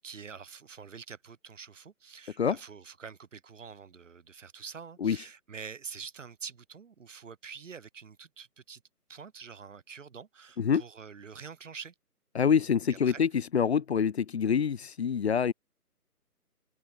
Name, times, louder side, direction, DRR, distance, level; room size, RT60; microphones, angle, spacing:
voice 1, 0.0-8.8 9.1-11.9 13.1-13.2, right 6 dB, 50° right, 7.9 m, -46 dB
voice 2, 12.3-15.5, left 7 dB, 40° left, 2.7 m, -26 dB
open air
figure-of-eight pair, 155°, 47 cm